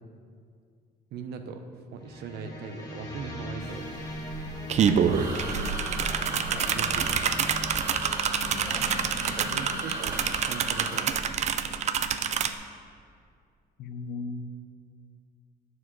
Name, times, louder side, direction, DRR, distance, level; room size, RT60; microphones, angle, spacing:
voice 1, 1.1-1.6 1.9-3.9 5.6-5.7 6.3-7.4 9.4-11.2, right 5 dB, 70° right, 7 dB, 0.7 m, -39 dB
sound 1, 2.0-9.2, left 1 dB, 20° left, 1.4 m, -40 dB
sound 2, 3.6-3.7 4.0-12.5, right 7 dB, 40° right, 0.4 m, -27 dB
sound 3, 5.0-11.0, right 2 dB, 25° right, 2.0 m, -36 dB
voice 2, 5.5-5.8 8.4-10.0 13.8-14.6, left 4 dB, 70° left, 10 dB, 0.5 m, -39 dB
8.7 x 4.8 x 6.0 m, 2.3 s
cardioid pair, 110°, 17 cm